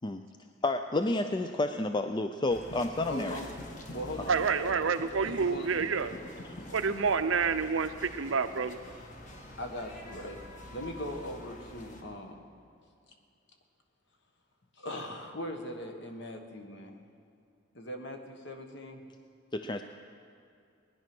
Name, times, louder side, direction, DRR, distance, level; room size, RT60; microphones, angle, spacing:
voice 1, 0.6-3.4 19.5-19.8, left 2 dB, 25° left, 7 dB, 0.4 m, -30 dB
sound 1, 2.5-12.0, left 1 dB, 40° left, 1.5 m, -46 dB
voice 2, 3.0-3.6 3.9-4.4 4.7-4.9 5.2-5.7 9.6-10.4 10.7-12.5 14.8-17.0 17.7-19.0, left 1 dB, 60° left, 4 dB, 1.5 m, -40 dB
voice 3, 4.3-6.1 6.7-8.8, right 5 dB, 75° right, 10 dB, 0.7 m, -28 dB
19.5 x 10.5 x 6.1 m, 2.5 s
head